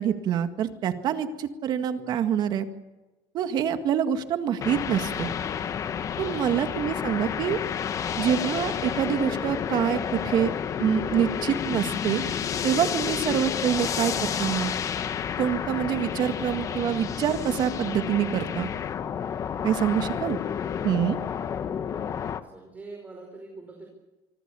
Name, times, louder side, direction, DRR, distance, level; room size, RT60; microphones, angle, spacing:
voice 1, 0.0-2.7 3.3-5.3 6.2-7.6 8.2-12.2 12.6-14.7 15.4-18.7 19.6-20.4 20.8-21.2, right 9 dB, 50° right, 8 dB, 2.0 m, -26 dB
sound 1, 4.6-22.4, left 8 dB, 35° left, 1.3 m, -30 dB
voice 2, 6.5-7.0 20.0-20.6 22.4-23.9, right 3 dB, 15° right, 1 dB, 5.0 m, -45 dB
26.0 x 24.0 x 7.1 m, 1.1 s
cardioid pair, 140°, 10 cm